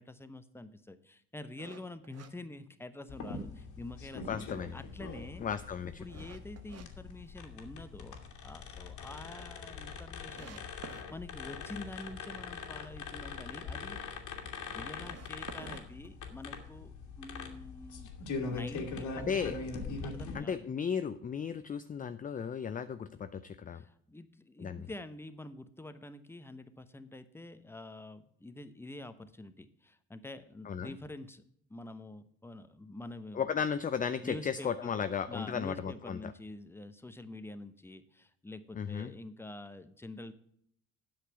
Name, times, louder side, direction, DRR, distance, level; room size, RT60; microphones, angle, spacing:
voice 1, 0.0-5.4 5.8-14.0 14.4-19.7 20.0-20.7 23.7-31.4 31.7-33.6 34.2-40.3, left 2 dB, 5° left, 11 dB, 0.9 m, -47 dB
sound 1, 1.6-3.3 3.7-3.8 4.3-6.9 7.3-8.0 8.4-8.5 8.8-8.9 9.1-9.2 9.8-9.9 10.3-11.1 14.8-16.7, right 7 dB, 45° right, 1.1 m, -51 dB
sound 2, 3.1-20.3, left 4 dB, 60° left, 1.9 m, -42 dB
voice 2, 4.3-4.8 5.4-5.9 19.2-19.6 20.3-23.8 24.6-24.8 30.7-30.9 33.3-36.3 38.8-39.1, left 7 dB, 25° left, 11 dB, 0.5 m, -35 dB
8.4 x 5.9 x 6.8 m, 0.67 s
hypercardioid pair, 70°, 34 cm